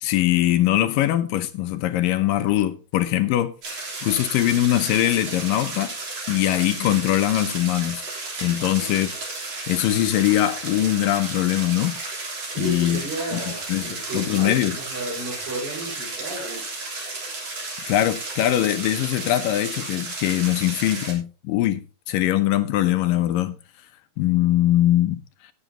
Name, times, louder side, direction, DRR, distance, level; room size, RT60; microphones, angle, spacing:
voice 1, 0.0-3.5 4.0-5.9 6.3-8.1 8.4-9.1 9.7-12.0 12.6-13.0 13.3-13.4 13.7-14.8 17.9-23.6 24.2-25.2, left 13 dB, 75° left, 2.3 m, -22 dB
sound 1, 3.6-21.1, right 3 dB, 40° right, 4.1 m, -33 dB
voice 2, 12.5-16.7, right 1 dB, 70° right, 6.7 m, -33 dB
18.0 x 8.1 x 2.8 m
omnidirectional pair, 4.4 m